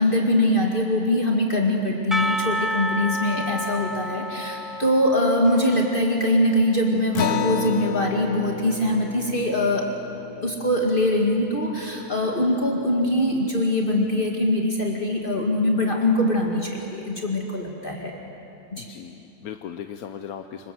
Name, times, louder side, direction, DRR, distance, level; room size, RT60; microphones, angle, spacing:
voice 1, 0.0-9.9 10.4-18.2 18.7-18.9, left 1 dB, 35° left, 0 dB, 2.1 m, -22 dB
Percussion / Church bell, 2.1-7.1, equal, ahead, 0.8 m, -30 dB
Acoustic guitar, 7.1-12.0, left 8 dB, 60° left, 1.1 m, -32 dB
voice 2, 18.8-20.7, left 8 dB, 80° left, 7 dB, 1.3 m, -37 dB
27.0 x 24.5 x 7.7 m, 3.0 s
omnidirectional pair, 1.5 m